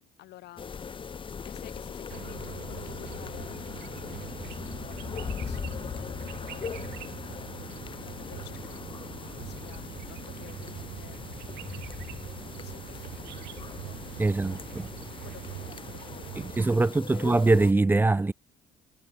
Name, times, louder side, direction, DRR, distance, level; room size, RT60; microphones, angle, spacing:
voice 1, 0.0-3.8 4.2-11.2 12.5-17.3, left 16 dB, 80° left, 5.9 m, -52 dB
sound 1, 0.6-17.7, left 6 dB, 30° left, 1.1 m, -40 dB
sound 2, 2.1-16.7, right 19 dB, 85° right, 2.8 m, -43 dB
voice 2, 14.2-14.9 16.4-18.3, right 3 dB, 10° right, 0.5 m, -23 dB
cardioid pair, 110°, 17 cm